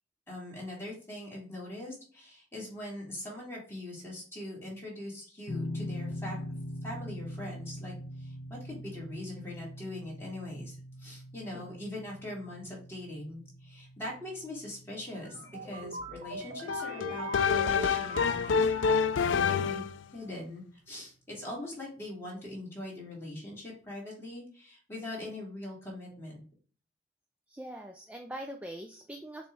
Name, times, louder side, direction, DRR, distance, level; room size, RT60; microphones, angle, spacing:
voice 1, 0.3-6.4 6.8-19.0 19.2-19.8 20.1-26.4, left 1 dB, 15° left, -5 dB, 3.0 m, -42 dB
sound 1, 5.5-18.4, left 1 dB, 65° left, 0.9 m, -43 dB
sound 2, 15.1-19.3, right 2 dB, 60° right, 1.6 m, -40 dB
sound 3, 16.7-20.0, left 6 dB, 85° left, 0.4 m, -27 dB
voice 2, 27.5-29.5, right 1 dB, 5° right, 3 dB, 0.4 m, -42 dB
7.0 x 3.2 x 4.7 m, 0.42 s
head